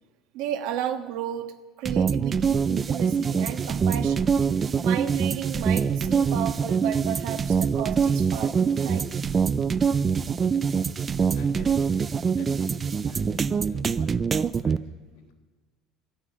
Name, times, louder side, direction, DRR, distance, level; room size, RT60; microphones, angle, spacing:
voice 1, 0.3-4.3 4.8-9.2, right 10 dB, 60° right, 7 dB, 1.4 m, -33 dB
sound 1, 1.9-14.8, right 6 dB, 20° right, 0.4 m, -24 dB
voice 2, 11.3-15.3, left 2 dB, 85° left, 2 dB, 3.8 m, -49 dB
12.5 x 10.0 x 9.3 m, 1.2 s
cardioid pair, 160°, 0 cm